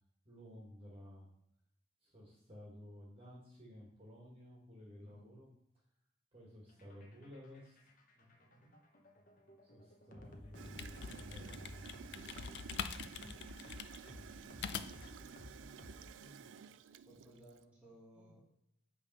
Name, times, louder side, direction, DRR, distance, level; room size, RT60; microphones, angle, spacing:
voice 1, 0.2-1.3 2.0-5.5 6.3-7.9 9.6-12.7 14.0-16.5 18.1-18.4, equal, 30° right, -4 dB, 1.5 m, -55 dB
voice 2, 5.0-5.3 8.1-8.7 17.0-18.4, right 1 dB, 5° right, -6 dB, 1.8 m, -61 dB
sound 1, 6.7-16.5, left 1 dB, 45° left, 0.8 m, -55 dB
sound 2, 10.5-15.2, left 7 dB, 60° left, 0.4 m, -45 dB
Gurgling / Toilet flush, 10.5-17.6, right 7 dB, 80° right, 0.3 m, -53 dB
8.2 x 3.5 x 5.3 m, 0.76 s
head